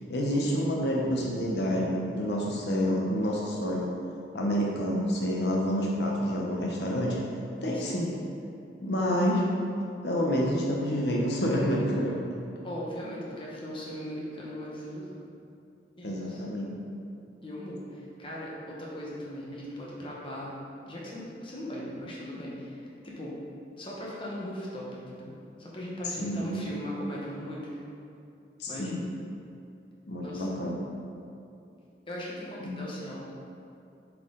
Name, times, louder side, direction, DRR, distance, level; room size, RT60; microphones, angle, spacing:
voice 1, 0.0-3.9 4.3-7.2 7.6-8.1 8.8-9.5 10.0-12.2 16.0-16.7 26.2-26.6 28.6-29.1 30.1-30.8 32.6-32.8, equal, 70° left, -3 dB, 0.8 m, -28 dB
voice 2, 12.6-15.2 16.0-16.4 17.4-20.5 20.9-23.4 23.8-25.3 25.6-27.7 28.7-28.9 30.2-30.6 32.1-33.2, equal, 30° left, -5 dB, 1.2 m, -39 dB
7.4 x 4.7 x 3.8 m, 2.7 s
head